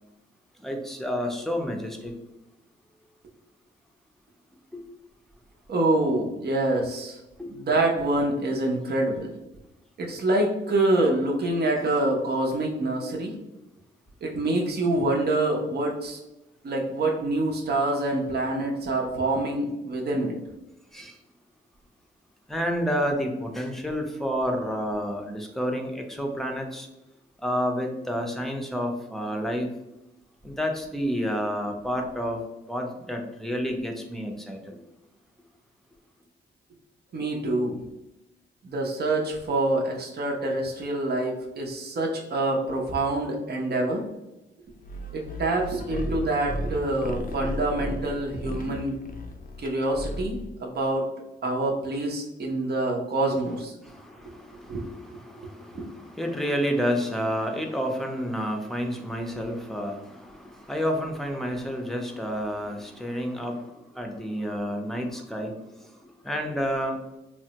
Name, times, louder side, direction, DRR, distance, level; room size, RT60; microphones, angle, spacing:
voice 1, 0.6-2.1 4.7-4.8 7.4-7.5 20.9-21.2 22.5-26.9 27.4-29.7 30.4-32.4 32.7-34.8 53.8-65.6 66.2-67.0, equal, ahead, 2 dB, 0.7 m, -30 dB
voice 2, 5.7-7.2 7.5-9.3 10.0-13.3 14.2-16.2 16.6-20.3 37.1-37.8 38.6-44.0 45.1-49.0 49.6-51.1 51.4-53.7 54.7-54.9 55.7-55.9, right 2 dB, 50° right, -1 dB, 0.7 m, -26 dB
sound 1, 44.8-50.6, equal, 40° left, 0.6 m, -35 dB
3.2 x 2.1 x 2.8 m, 0.96 s
supercardioid pair, 50°, 21 cm